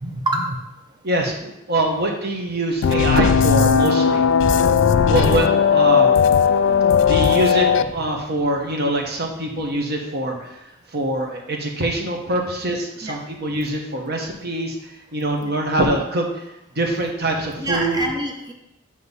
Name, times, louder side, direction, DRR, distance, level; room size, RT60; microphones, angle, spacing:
voice 1, 0.0-0.6 13.0-13.2 15.4-15.5 17.6-18.5, right 1 dB, 20° right, 2 dB, 0.7 m, -26 dB
voice 2, 1.0-4.2 5.0-6.1 7.1-10.4 10.9-14.8 15.1-16.2 16.8-18.0, right 1 dB, 55° right, 1 dB, 1.2 m, -23 dB
sound 1, 2.8-7.8, left 6 dB, 70° left, 0.3 m, -16 dB
8.1 x 3.1 x 5.4 m, 0.85 s
head